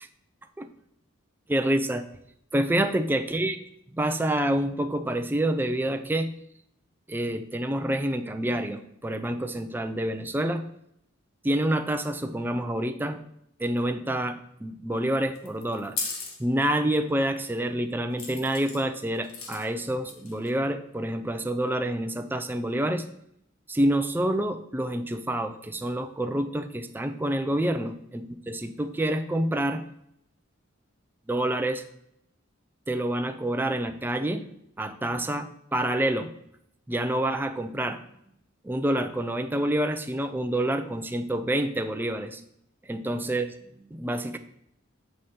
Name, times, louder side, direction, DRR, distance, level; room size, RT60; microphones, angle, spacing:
voice 1, 1.5-2.0 2.5-3.6 3.9-6.3 7.1-10.6 11.4-13.2 13.6-16.0 16.4-23.0 23.7-29.8 31.3-31.8 32.9-34.4 34.8-36.3 36.9-38.0 38.6-42.4 42.8-43.5 43.7-44.4, right 1 dB, 10° right, 6 dB, 0.4 m, -27 dB
sound 1, 15.4-16.4 18.2-18.8 19.2-19.8 20.1-20.5, left 4 dB, 80° left, 1.3 m, -35 dB
8.0 x 5.0 x 4.3 m, 0.75 s
head